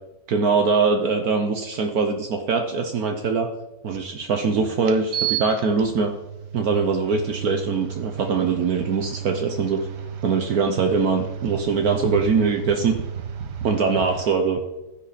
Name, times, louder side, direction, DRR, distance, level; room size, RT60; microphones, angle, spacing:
voice 1, 0.3-3.5 3.8-6.1 6.5-9.9 10.2-13.0 13.6-14.6, right 5 dB, 65° right, 5 dB, 1.4 m, -22 dB
sound 1, 3.9-4.0 4.8-14.2, right 8 dB, 85° right, 1.7 m, -33 dB
15.5 x 11.0 x 4.2 m, 1.0 s
omnidirectional pair, 1.7 m